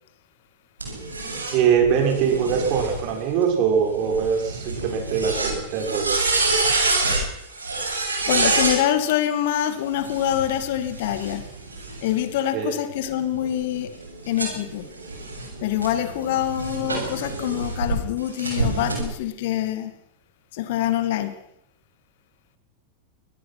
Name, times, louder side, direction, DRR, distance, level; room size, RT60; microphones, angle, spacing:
sound 1, 0.8-8.8 9.9-12.3 12.9-18.0 18.4-19.0, right 3 dB, 80° right, 7.3 m, -27 dB
voice 1, 1.5-6.1 12.5-12.7, right 7 dB, 45° right, 3 dB, 6.2 m, -22 dB
voice 2, 8.3-11.5 12.0-14.0 14.3-14.9 15.6-19.9 20.5-21.4, left 11 dB, 50° left, 11 dB, 2.2 m, -25 dB
24.0 x 19.0 x 6.1 m, 0.75 s
figure-of-eight pair, 90°, 0 cm